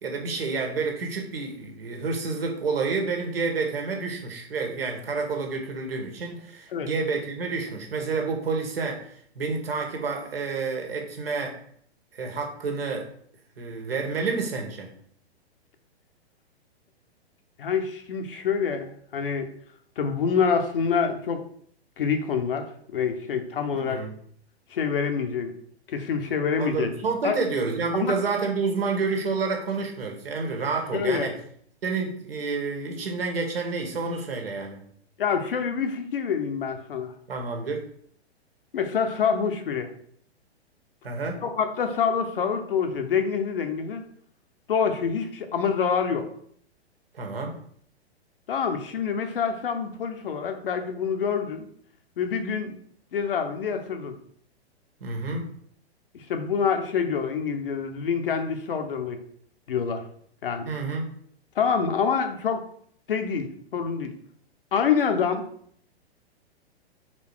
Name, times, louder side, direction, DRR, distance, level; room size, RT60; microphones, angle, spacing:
voice 1, 0.0-11.6 12.1-13.1 13.6-14.9 23.7-24.1 26.6-31.3 31.8-34.8 37.3-37.8 41.0-41.4 47.1-47.6 55.0-55.5 60.6-61.0, right 4 dB, 60° right, 2 dB, 1.7 m, -29 dB
voice 2, 17.6-19.5 20.0-21.4 22.0-22.7 22.9-24.0 24.7-25.5 25.9-26.9 27.2-27.4 28.0-28.1 30.9-31.3 35.2-37.1 38.7-39.9 41.4-44.0 44.7-46.3 48.5-51.7 52.2-52.8 53.1-54.1 56.1-59.2 59.7-60.0 60.4-60.7 61.6-62.6 63.1-64.1 64.7-65.5, left 6 dB, 55° left, 7 dB, 1.0 m, -26 dB
5.2 x 4.3 x 4.7 m, 0.62 s
figure-of-eight pair, 110°, 32 cm